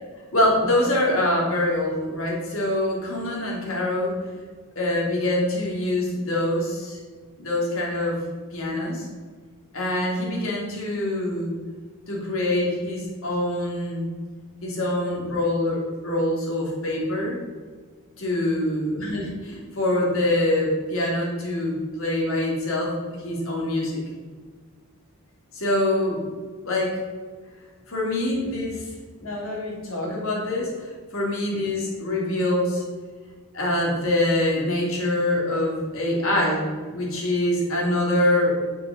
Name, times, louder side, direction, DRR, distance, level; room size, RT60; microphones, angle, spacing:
voice 1, 0.3-4.2 4.7-7.0 7.4-8.2 8.5-9.1 9.7-11.5 12.1-14.1 14.6-17.4 18.2-24.0 25.5-26.2 26.6-26.9 27.9-28.9 29.2-32.8 33.5-36.6 36.9-38.6, left 1 dB, 65° left, -3 dB, 3.4 m, -24 dB
7.2 x 6.9 x 7.5 m, 1.5 s
head